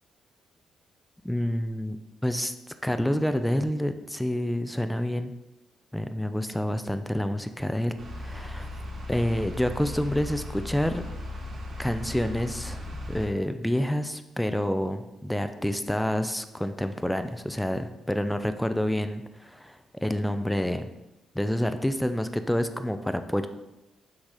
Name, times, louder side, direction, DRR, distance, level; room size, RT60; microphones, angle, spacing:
voice 1, 1.2-2.0 2.2-2.5 2.8-5.3 5.9-8.7 9.1-11.0 11.8-12.8 13.1-20.9 21.3-23.5, left 1 dB, 5° left, 9 dB, 0.5 m, -28 dB
sound 1, 8.0-13.3, left 1 dB, 50° right, 1.4 m, -37 dB
6.2 x 4.0 x 4.9 m, 0.98 s
cardioid pair, 90°, 0 cm